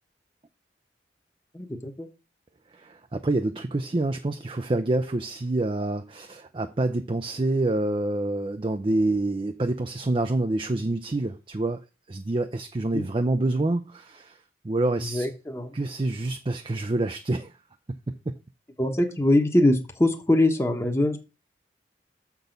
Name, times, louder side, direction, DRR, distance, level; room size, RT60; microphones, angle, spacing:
voice 1, 1.5-2.1 12.9-13.0 15.1-15.7 18.8-21.2, left 1 dB, 15° left, 1.0 m, -23 dB
voice 2, 2.7-14.4 14.6-15.3 15.7-17.5 18.1-18.4, right 2 dB, 30° right, 0.4 m, -27 dB
6.8 x 6.0 x 5.1 m
head